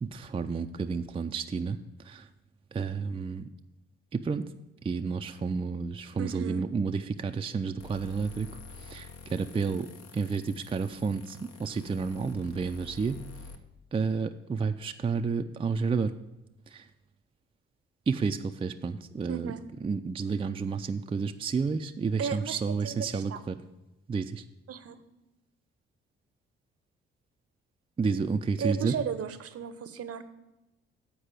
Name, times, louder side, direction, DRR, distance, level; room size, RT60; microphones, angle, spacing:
voice 1, 0.0-1.8 2.1-2.2 2.7-3.5 4.1-4.4 4.8-8.5 8.9-9.9 10.1-13.2 13.9-16.1 16.7-16.8 18.1-19.5 19.8-23.6 24.1-24.4 28.0-28.9, right 5 dB, 20° right, 7 dB, 0.4 m, -30 dB
voice 2, 6.2-6.6 19.3-19.6 22.2-23.4 24.7-25.0 28.6-30.3, right 7 dB, 50° right, 12 dB, 0.8 m, -35 dB
sound 1, 7.8-13.6, left 4 dB, 60° left, 0.9 m, -48 dB
8.3 x 4.7 x 7.3 m, 0.99 s
hypercardioid pair, 45°, 29 cm